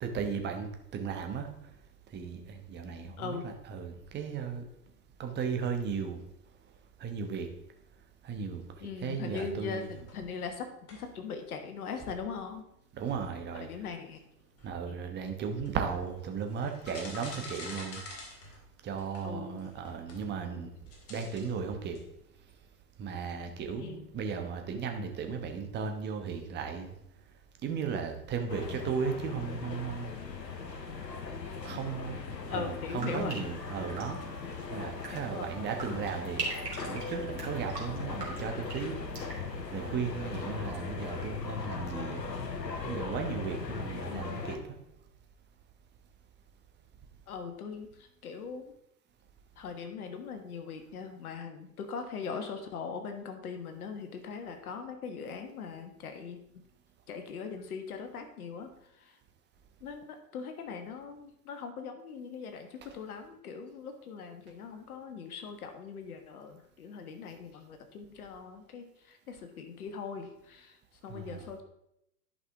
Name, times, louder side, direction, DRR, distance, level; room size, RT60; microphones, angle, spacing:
voice 1, 0.0-1.5 2.1-4.7 5.2-6.2 7.0-7.5 8.2-9.9 12.9-13.9 14.6-18.0 18.8-20.7 21.1-22.0 23.0-26.9 27.6-30.1 31.6-32.2 32.5-34.4 34.7-36.5 36.8-39.0 39.7-42.3 42.8-44.6 71.1-71.5, right 6 dB, 20° right, 5 dB, 1.1 m, -36 dB
voice 2, 8.8-12.6 13.6-14.2 14.8-15.0 19.2-19.6 23.8-24.0 32.5-33.4 35.1-35.5 44.1-44.4 47.3-47.9 48.2-48.7 49.6-56.4 57.1-58.7 59.8-70.8 71.0-71.6, left 5 dB, 60° left, 6 dB, 1.4 m, -40 dB
sound 1, 9.3-10.5 10.9-22.5, left 2 dB, 30° left, 2.2 m, -49 dB
sound 2, 28.5-44.6, left 4 dB, 85° left, 1.0 m, -39 dB
sound 3, 32.8-40.8 41.0-41.6, right 3 dB, 75° right, 2.6 m, -43 dB
11.0 x 5.5 x 3.5 m, 0.79 s
figure-of-eight pair, 95°, 49 cm